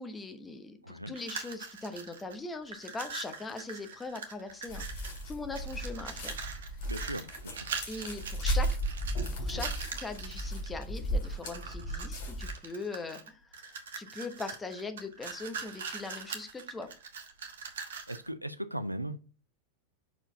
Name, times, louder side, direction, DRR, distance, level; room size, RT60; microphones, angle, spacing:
voice 1, 0.0-4.9 5.3-6.4 7.9-8.7 9.3-16.9, left 3 dB, 15° left, 8 dB, 1.0 m, -41 dB
voice 2, 0.8-1.2 6.9-7.7 18.1-19.2, right 1 dB, 85° right, 12 dB, 0.5 m, -38 dB
sound 1, 1.1-2.3 2.6-5.2 5.5-10.7 11.2-12.1 12.4-18.3, right 5 dB, 60° right, 1.1 m, -42 dB
sound 2, 4.7-12.5, right 1 dB, 55° left, 3.5 m, -35 dB
6.0 x 4.5 x 3.9 m, 0.34 s
figure-of-eight pair, 90°, 0 cm